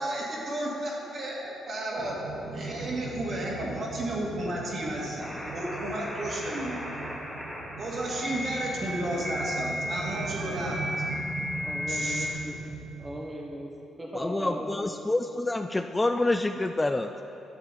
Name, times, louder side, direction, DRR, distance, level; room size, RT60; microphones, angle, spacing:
voice 1, 0.0-2.2 2.5-6.8 7.8-10.8 11.9-12.3, right 1 dB, 50° right, -4 dB, 2.3 m, -33 dB
sound 1, 2.0-13.1, right 3 dB, 75° right, 1.7 m, -39 dB
sound 2, 5.2-12.3, equal, ahead, 1.5 m, -35 dB
voice 2, 11.6-13.7 14.0-14.9, right 1 dB, 15° right, -1 dB, 1.5 m, -38 dB
voice 3, 14.1-17.1, left 2 dB, 15° left, 7 dB, 0.3 m, -27 dB
11.5 x 7.3 x 4.2 m, 2.8 s
cardioid pair, 90°, 0 cm